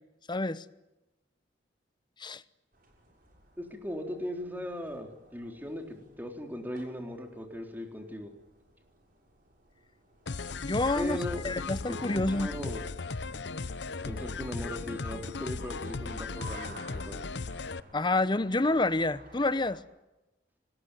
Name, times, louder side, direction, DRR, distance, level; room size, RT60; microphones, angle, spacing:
voice 1, 0.3-0.6 2.2-2.4 10.6-11.2 11.4-12.5 17.9-19.8, left 2 dB, 25° left, 0.9 m, -28 dB
sound 1, 2.7-19.8, right 1 dB, 50° right, 6.7 m, -55 dB
voice 2, 3.6-8.3 11.0-11.5 11.9-12.9 14.1-17.3, equal, 10° right, 3.9 m, -38 dB
sound 2, 10.3-17.8, left 4 dB, 70° left, 0.8 m, -37 dB
25.5 x 20.0 x 9.3 m
head